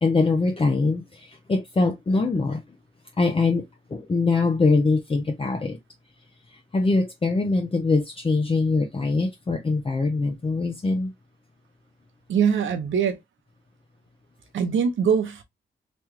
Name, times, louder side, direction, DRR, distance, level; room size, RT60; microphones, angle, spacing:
voice 1, 0.0-2.6 3.2-5.8 6.5-11.1, left 3 dB, 30° left, 0.6 m, -23 dB
voice 2, 12.3-13.2 14.5-15.4, right 7 dB, 85° right, 0.8 m, -22 dB
3.0 x 2.3 x 3.1 m
cardioid pair, 55°, 19 cm